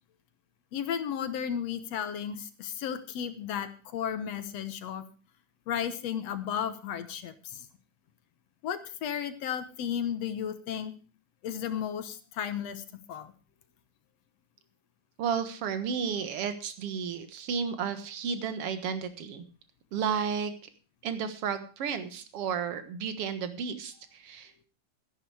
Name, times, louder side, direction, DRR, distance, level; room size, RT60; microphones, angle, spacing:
voice 1, 0.7-5.0 5.7-7.7 8.6-10.9 11.4-13.3, left 8 dB, 60° left, 11 dB, 2.0 m, -34 dB
voice 2, 15.2-19.4 19.9-20.5 21.0-24.6, right 6 dB, 55° right, 10 dB, 2.1 m, -32 dB
14.0 x 10.5 x 4.8 m, 0.36 s
omnidirectional pair, 3.7 m